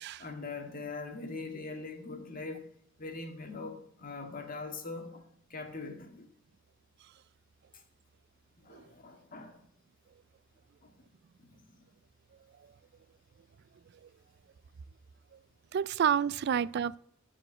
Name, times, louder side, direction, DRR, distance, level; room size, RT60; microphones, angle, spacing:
voice 1, 0.2-2.6 3.0-5.1 5.5-6.1 8.7-9.5, left 3 dB, 45° left, 1.8 m, -41 dB
voice 2, 15.7-17.0, right 8 dB, 55° right, 0.3 m, -29 dB
12.5 x 4.9 x 8.3 m
head